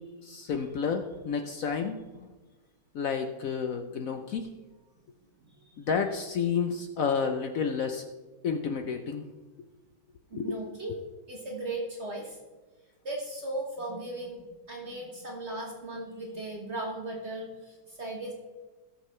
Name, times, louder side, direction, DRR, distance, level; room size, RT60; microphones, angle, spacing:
voice 1, 0.2-2.3 2.9-4.5 5.8-8.1 8.4-9.3 10.3-10.6, left 6 dB, 65° left, 5 dB, 0.9 m, -30 dB
voice 2, 10.3-11.0 11.3-12.4 13.0-18.3, right 2 dB, 40° right, -1 dB, 1.6 m, -37 dB
18.5 x 6.6 x 3.2 m, 1.3 s
omnidirectional pair, 1.9 m